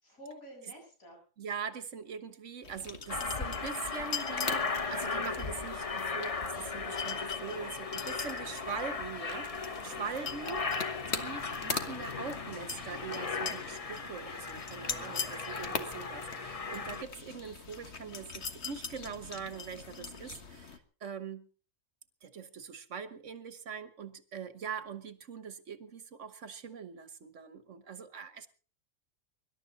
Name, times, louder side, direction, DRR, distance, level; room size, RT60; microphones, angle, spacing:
voice 1, 0.0-1.2 9.8-10.0 14.8-15.2, equal, 85° left, -1 dB, 8.7 m, -50 dB
voice 2, 1.4-21.5 22.2-28.5, right 6 dB, 65° right, 12 dB, 1.5 m, -42 dB
sound 1, 2.6-20.8, left 5 dB, 55° left, 1.7 m, -42 dB
Aircraft, 3.1-17.0, left 4 dB, 30° left, 0.9 m, -37 dB
24.5 x 12.0 x 4.1 m, 0.40 s
omnidirectional pair, 1.4 m